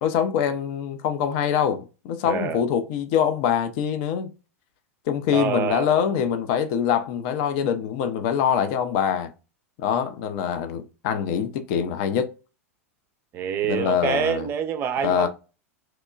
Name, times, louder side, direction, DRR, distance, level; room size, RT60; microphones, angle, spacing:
voice 1, 0.0-4.3 5.1-9.3 9.8-12.3 13.7-14.5 15.0-15.3, left 8 dB, 45° left, 0.4 m, -24 dB
voice 2, 2.2-2.7 5.3-6.0 13.3-15.3, right 8 dB, 30° right, 0.4 m, -26 dB
2.9 x 2.1 x 2.2 m
figure-of-eight pair, 90°, 8 cm